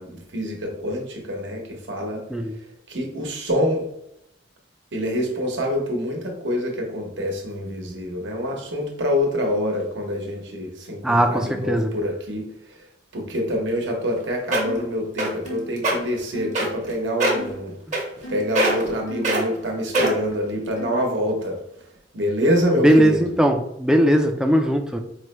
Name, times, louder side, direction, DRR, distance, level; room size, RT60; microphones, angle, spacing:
voice 1, 0.0-2.2 2.9-3.8 4.9-12.8 13.1-17.7 18.3-21.6 22.1-23.3, equal, 75° right, 1 dB, 0.9 m, -26 dB
voice 2, 11.0-11.9 22.8-25.0, equal, 5° right, 4 dB, 0.3 m, -19 dB
sound 1, 14.2-14.3 14.5-14.8 15.2-15.5 15.8-15.9 16.6-16.9 17.2-17.5 17.9-18.3 18.6-18.9 19.2-19.4 19.9-20.3 20.9-21.0, right 1 dB, 45° right, 0.9 m, -21 dB
sound 2, 14.6-14.9 15.5-15.7 16.3-16.6 17.3-17.6 18.2-18.5 19.1-19.3 19.9-20.2 20.8-21.1, left 1 dB, 85° left, 0.9 m, -36 dB
4.5 x 2.1 x 3.0 m, 0.79 s
head